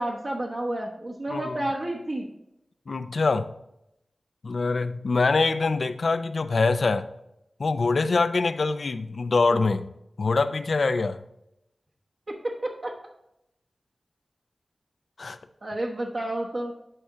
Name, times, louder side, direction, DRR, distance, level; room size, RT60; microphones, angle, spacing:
voice 1, 0.0-2.3 12.3-12.9 15.6-16.7, right 1 dB, 55° right, -2 dB, 1.0 m, -30 dB
voice 2, 1.3-1.6 2.9-3.5 4.4-7.0 7.6-9.9 10.2-11.2 15.2-15.4, left 3 dB, 75° left, 11 dB, 0.4 m, -24 dB
11.0 x 4.3 x 3.7 m, 0.82 s
wide cardioid pair, 65°, 0 cm